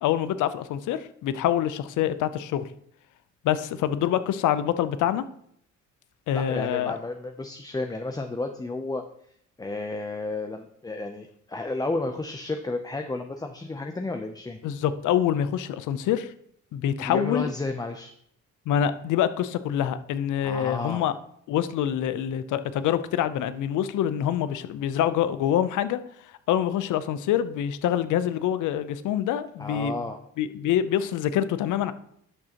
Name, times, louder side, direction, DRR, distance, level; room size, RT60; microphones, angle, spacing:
voice 1, 0.0-2.7 3.4-5.2 6.3-7.0 14.6-16.3 16.7-17.5 18.7-21.1 21.5-26.0 26.5-29.9 30.4-31.9, left 10 dB, 80° left, 13 dB, 0.6 m, -25 dB
voice 2, 6.3-9.0 9.6-14.6 17.0-18.1 20.4-21.0 29.6-30.2, left 2 dB, 15° left, 6 dB, 0.5 m, -32 dB
10.5 x 6.3 x 2.9 m, 0.70 s
cardioid pair, 90°, 30 cm